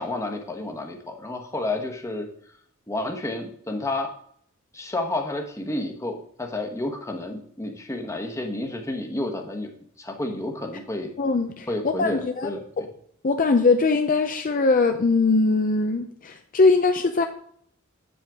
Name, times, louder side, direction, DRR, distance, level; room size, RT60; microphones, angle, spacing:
voice 1, 0.0-2.3 2.9-4.1 4.7-9.7 10.0-11.1 11.7-12.9, left 2 dB, 15° left, 3 dB, 1.1 m, -30 dB
voice 2, 11.2-12.5 12.8-12.9 13.2-17.2, left 3 dB, 40° left, 6 dB, 0.5 m, -21 dB
8.3 x 7.7 x 3.6 m, 0.64 s
head